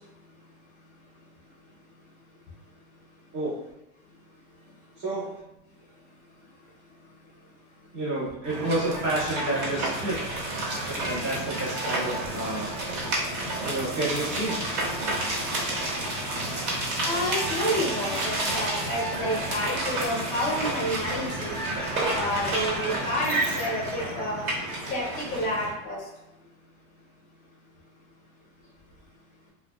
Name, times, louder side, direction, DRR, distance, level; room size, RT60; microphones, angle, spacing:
voice 1, 5.0-5.3 7.9-10.4 10.9-12.8 13.6-14.8, right 2 dB, 25° right, -5 dB, 0.6 m, -30 dB
sound 1, 8.4-25.7, right 1 dB, 70° right, 1.2 m, -30 dB
voice 2, 17.0-21.6 22.1-24.4 24.9-26.0, equal, 20° left, -4 dB, 0.6 m, -29 dB
2.5 x 2.2 x 2.2 m, 0.94 s
supercardioid pair, 150°, 42 cm